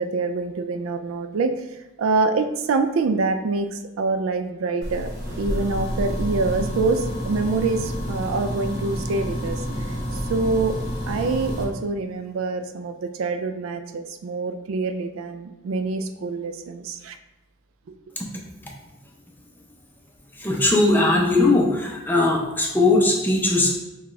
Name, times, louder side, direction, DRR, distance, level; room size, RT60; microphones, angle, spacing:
voice 1, 0.0-1.5 2.0-5.1 5.4-9.6 10.3-10.8 11.1-17.2, right 3 dB, 90° right, 8 dB, 0.4 m, -25 dB
sound 1, 4.8-11.6, equal, 60° right, 1.1 m, -29 dB
voice 2, 20.4-23.8, left 2 dB, 10° left, -2 dB, 0.6 m, -19 dB
5.9 x 2.4 x 3.1 m, 1.1 s
head